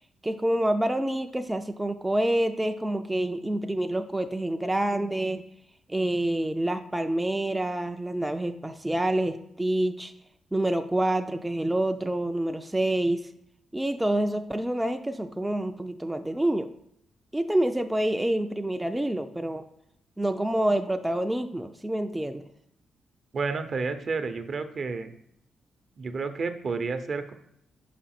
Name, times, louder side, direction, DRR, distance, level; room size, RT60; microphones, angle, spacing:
voice 1, 0.2-5.4 5.9-10.1 10.5-13.3 13.7-16.7 17.3-19.7 20.2-22.4, right 1 dB, 10° right, 6 dB, 0.4 m, -27 dB
voice 2, 23.3-25.1 26.0-27.3, right 4 dB, 55° right, 8 dB, 0.6 m, -30 dB
5.5 x 5.1 x 4.3 m, 0.75 s
cardioid pair, 65°, 0 cm